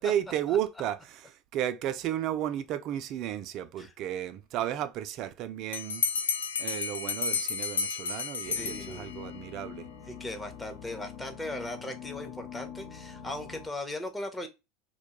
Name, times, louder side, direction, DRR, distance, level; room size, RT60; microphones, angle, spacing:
voice 1, 0.0-6.0 6.6-9.9, right 11 dB, 55° right, 0.3 m, -33 dB
Bell, 5.7-9.4, left 5 dB, 90° left, 0.3 m, -32 dB
sound 1, 8.4-13.7, left 8 dB, 55° left, 0.7 m, -44 dB
voice 2, 8.6-9.1 10.1-14.5, left 1 dB, 10° left, 0.7 m, -38 dB
2.2 x 2.2 x 2.8 m
hypercardioid pair, 90°, 0 cm